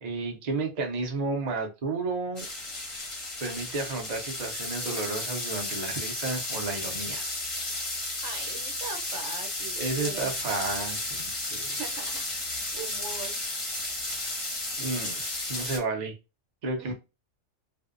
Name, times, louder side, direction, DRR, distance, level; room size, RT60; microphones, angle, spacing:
voice 1, 0.0-2.5 3.4-7.2 9.8-11.7 14.8-16.1 16.6-16.9, right 3 dB, 45° right, 2 dB, 0.6 m, -32 dB
sound 1, 2.4-15.8, left 2 dB, 30° left, 0.7 m, -33 dB
voice 2, 8.2-10.3 11.8-13.4 16.8-16.9, right 5 dB, 70° right, 2 dB, 1.0 m, -40 dB
2.6 x 2.1 x 2.4 m, 0.27 s
omnidirectional pair, 1.3 m